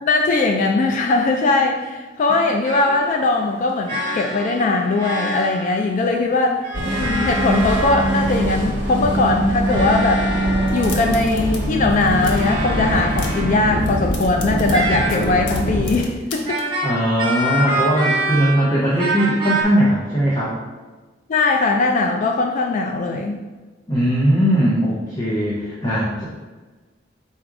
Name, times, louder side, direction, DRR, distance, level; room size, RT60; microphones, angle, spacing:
voice 1, 0.0-10.3 10.7-16.6 21.3-23.4, left 3 dB, 45° left, 2 dB, 0.3 m, -20 dB
sound 1, 2.6-3.1 3.9-5.8 6.6-8.6 9.5-11.2 12.2-14.0 14.7-15.6 16.4-18.7 19.0-19.6, right 1 dB, 25° right, 0.7 m, -26 dB
sound 2, 6.7-16.0, equal, 75° right, 0.9 m, -23 dB
sound 3, 10.6-11.6 11.9-12.5 12.9-13.5 13.8-16.6, left 4 dB, 80° left, 0.7 m, -35 dB
voice 2, 16.8-20.6 23.9-26.2, equal, 20° left, -6 dB, 0.7 m, -19 dB
4.1 x 2.5 x 4.6 m, 1.3 s
head